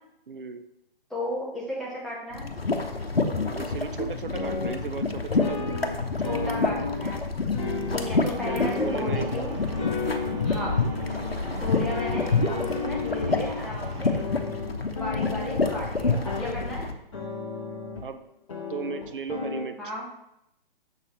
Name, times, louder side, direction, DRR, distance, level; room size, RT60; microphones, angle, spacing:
voice 1, 0.3-0.6 3.5-5.6 6.2-6.6 7.6-8.0 8.5-9.4 10.0-10.4 18.0-18.2 18.6-19.8, right 6 dB, 60° right, 9 dB, 0.6 m, -36 dB
voice 2, 1.1-2.5 6.2-7.2 7.9-9.6 10.4-10.8 11.5-14.2 15.0-16.8 19.8-20.0, left 1 dB, ahead, -6 dB, 1.0 m, -34 dB
sound 1, 2.3-16.9, left 3 dB, 85° left, 0.9 m, -28 dB
sound 2, 4.3-4.9 5.4-7.2 7.5-9.2 9.7-11.4 11.8-13.6 14.2-16.8 17.1-18.0 18.5-19.6, left 4 dB, 30° left, 1.2 m, -33 dB
sound 3, 7.9-14.2, right 2 dB, 30° right, 0.9 m, -42 dB
6.7 x 6.6 x 3.1 m, 0.81 s
figure-of-eight pair, 135°, 29 cm